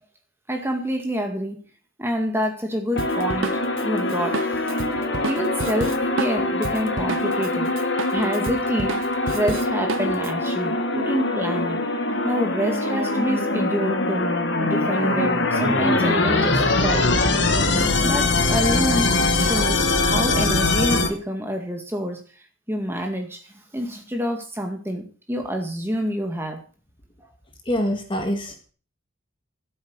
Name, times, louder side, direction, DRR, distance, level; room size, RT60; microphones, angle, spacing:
voice 1, 0.5-1.6 2.0-3.5 3.8-4.9 5.2-7.7 8.1-9.0 9.3-11.8 12.2-17.1 18.0-22.2 22.7-25.0 25.3-26.6, equal, 10° right, 4 dB, 2.1 m, -27 dB
sound 1, 3.0-21.1, left 2 dB, 55° left, 1.8 m, -23 dB
Drum kit, 3.0-7.5 7.8-10.3, right 4 dB, 70° right, 0.7 m, -31 dB
voice 2, 27.6-28.7, equal, 25° left, 4 dB, 1.7 m, -25 dB
12.0 x 8.4 x 6.4 m, 0.38 s
head